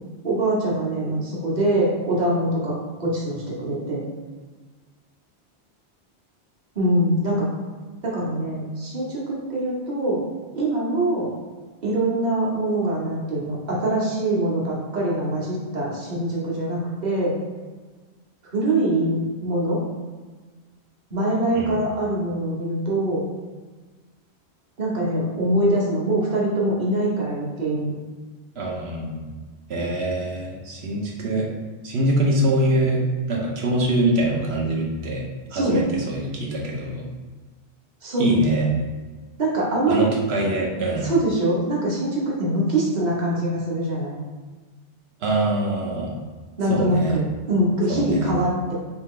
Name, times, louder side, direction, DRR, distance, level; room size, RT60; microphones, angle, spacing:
voice 1, 0.2-2.7 3.0-4.0 6.7-7.5 8.0-10.2 10.5-11.3 11.8-17.3 18.5-19.8 21.1-23.2 24.8-27.9 35.5-35.8 38.0-38.3 39.4-40.0 41.0-44.2 46.6-48.7, right 1 dB, 45° right, -5 dB, 1.1 m, -23 dB
voice 2, 28.6-29.3 29.7-31.5 31.8-33.0 33.3-37.0 38.2-38.7 39.9-41.1 45.2-46.1 46.7-47.2 47.9-48.4, right 1 dB, 75° right, -1 dB, 1.1 m, -24 dB
4.0 x 2.8 x 3.6 m, 1.4 s
omnidirectional pair, 1.1 m